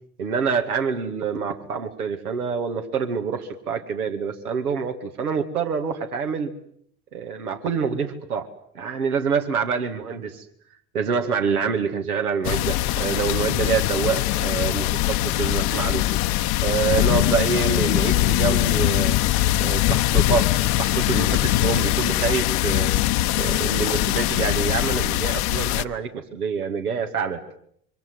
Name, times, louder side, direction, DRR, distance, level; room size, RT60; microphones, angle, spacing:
voice 1, 0.2-6.5 7.1-8.5 8.7-10.4 10.9-16.0 16.6-19.2 19.6-22.9 23.3-27.4, right 6 dB, 80° right, 6 dB, 2.4 m, -26 dB
sound 1, 12.4-25.8, left 15 dB, 55° left, 1.1 m, -22 dB
26.5 x 25.0 x 7.9 m, 0.68 s
figure-of-eight pair, 65°, 43 cm